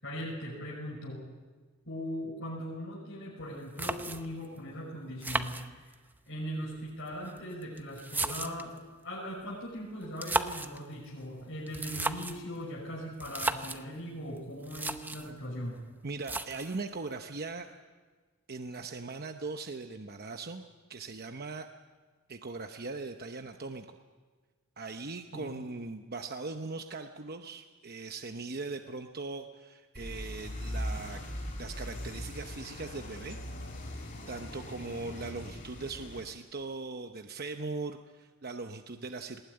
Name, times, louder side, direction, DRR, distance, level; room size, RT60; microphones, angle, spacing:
voice 1, 0.0-1.3 1.9-5.9 6.3-15.9 25.3-25.5, equal, 60° left, -5 dB, 5.9 m, -40 dB
sound 1, 3.4-3.5 3.8-4.5 5.2-6.2 7.1-8.8 10.0-10.8 11.7-12.5 13.2-13.8 14.4-14.5 14.6-15.3 16.2-16.8, right 2 dB, 10° right, 0.8 m, -34 dB
voice 2, 16.0-17.7 18.5-21.7 22.3-24.0 24.8-31.2 31.6-33.4 34.3-39.4, right 3 dB, 45° right, 6 dB, 0.9 m, -40 dB
sound 2, 29.9-36.2, equal, 40° left, 5.6 m, -40 dB
20.0 x 19.0 x 9.6 m, 1.4 s
head